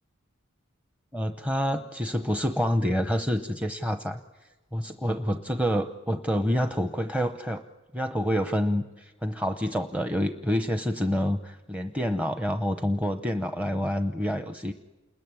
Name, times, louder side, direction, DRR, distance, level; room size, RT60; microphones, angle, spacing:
voice 1, 1.1-4.2 4.7-7.6 7.9-14.7, equal, 5° right, 7 dB, 0.8 m, -27 dB
29.0 x 21.0 x 9.7 m, 1.2 s
head